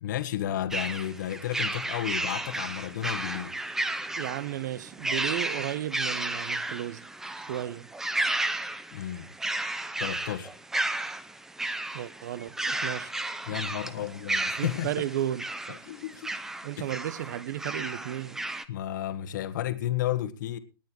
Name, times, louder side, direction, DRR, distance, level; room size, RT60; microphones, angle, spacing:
voice 1, 0.0-3.5 8.9-9.3 10.0-10.5 13.5-14.9 15.7-16.3 16.8-16.9 18.7-20.6, left 12 dB, 50° left, 1.5 m, -32 dB
sound 1, 0.7-18.6, right 2 dB, 5° right, 0.7 m, -33 dB
voice 2, 4.1-7.1 7.4-7.9 11.9-13.2 13.7-14.1 14.6-15.8 16.6-18.4, right 12 dB, 50° right, 0.9 m, -34 dB
19.0 x 9.3 x 4.6 m
hypercardioid pair, 160°, 13 cm